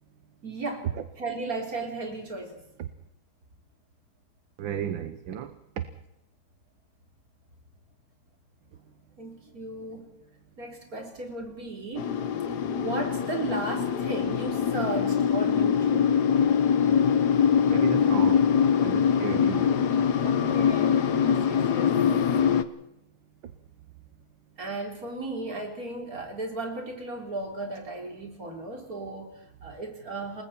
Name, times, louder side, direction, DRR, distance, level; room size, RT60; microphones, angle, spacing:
voice 1, 0.4-0.9 1.2-2.6 9.2-10.1 10.6-12.2 12.5-16.1 20.2-21.9 24.6-30.4, right 2 dB, 40° right, 2 dB, 4.3 m, -35 dB
voice 2, 4.6-5.8 17.6-18.4 18.8-19.7, right 9 dB, 65° right, 10 dB, 1.7 m, -34 dB
sound 1, 12.0-22.6, left 7 dB, 55° left, 1.4 m, -23 dB
29.0 x 20.0 x 4.4 m, 0.86 s
omnidirectional pair, 2.3 m